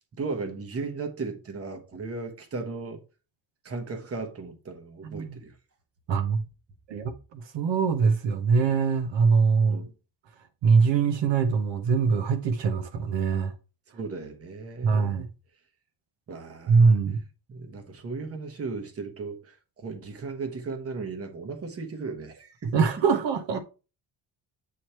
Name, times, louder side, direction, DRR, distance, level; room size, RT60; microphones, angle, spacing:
voice 1, 0.0-3.0 3.6-5.6 9.6-9.9 13.9-15.2 16.3-17.0 17.5-22.7 23.5-23.6, right 4 dB, 30° right, 1.0 m, -36 dB
voice 2, 5.0-5.4 6.1-6.4 6.9-9.9 10.6-13.5 14.8-15.3 16.7-17.2 22.7-23.6, right 5 dB, 65° right, 0.8 m, -23 dB
8.4 x 3.1 x 4.2 m
wide cardioid pair, 170°, 48 cm